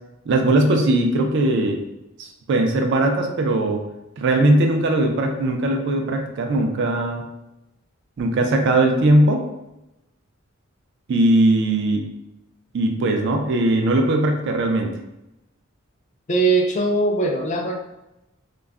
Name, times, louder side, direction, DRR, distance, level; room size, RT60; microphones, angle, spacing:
voice 1, 0.3-1.8 2.2-3.8 4.2-7.2 8.2-9.4 11.1-12.0 12.7-14.9, right 1 dB, 60° right, 3 dB, 0.4 m, -19 dB
voice 2, 16.3-17.8, right 3 dB, 35° left, 1 dB, 0.4 m, -20 dB
2.3 x 2.0 x 3.4 m, 0.91 s
head